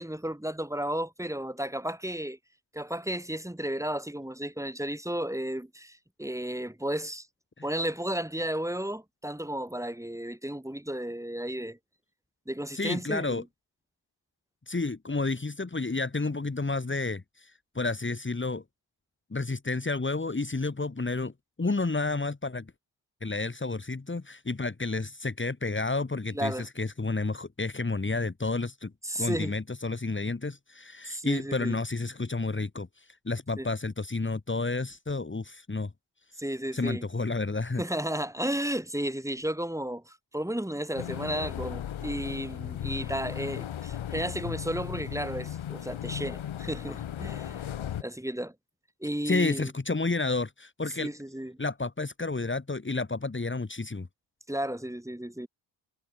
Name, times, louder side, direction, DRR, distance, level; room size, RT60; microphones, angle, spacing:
voice 1, 0.0-2.4 2.7-7.3 7.6-11.8 12.5-13.4 26.3-26.7 29.0-29.6 31.1-31.8 33.6-33.7 36.4-37.0 37.8-47.6 48.0-48.5 49.0-49.7 50.9-51.6 54.5-55.5, right 1 dB, 5° right, 6.4 m, -33 dB
voice 2, 12.7-13.4 14.7-18.6 19.3-21.3 21.6-22.7 23.2-35.9 36.7-37.8 49.3-51.1 51.6-54.1, left 3 dB, 25° left, 4.5 m, -31 dB
sound 1, 40.9-48.0, left 10 dB, 70° left, 3.4 m, -36 dB
cardioid pair, 75°, 49 cm